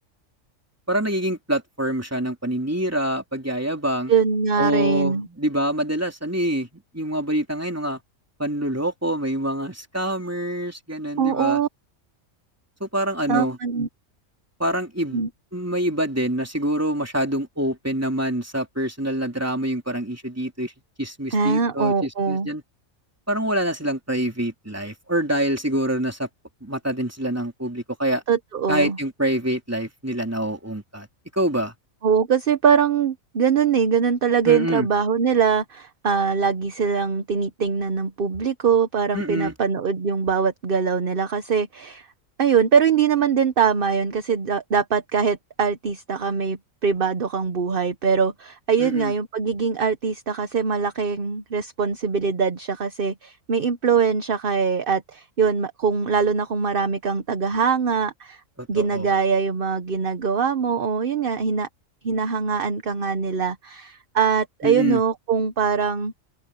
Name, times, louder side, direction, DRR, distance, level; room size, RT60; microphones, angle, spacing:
voice 1, 0.9-4.1 4.6-6.7 6.9-8.0 8.4-11.6 12.8-13.6 14.6-15.2 15.5-20.7 21.0-22.6 23.3-26.3 26.6-28.2 28.7-31.1 31.3-31.7 34.4-34.9 39.1-39.5 48.8-49.1 58.6-59.1 64.6-65.0, right 1 dB, 10° right, 3.2 m, -26 dB
voice 2, 4.1-5.3 11.2-11.7 13.3-13.9 15.1-15.3 21.3-22.5 28.3-29.0 32.0-42.1 42.4-58.4 58.7-61.7 62.0-66.1, right 6 dB, 45° right, 1.1 m, -22 dB
omnidirectional pair, 1.4 m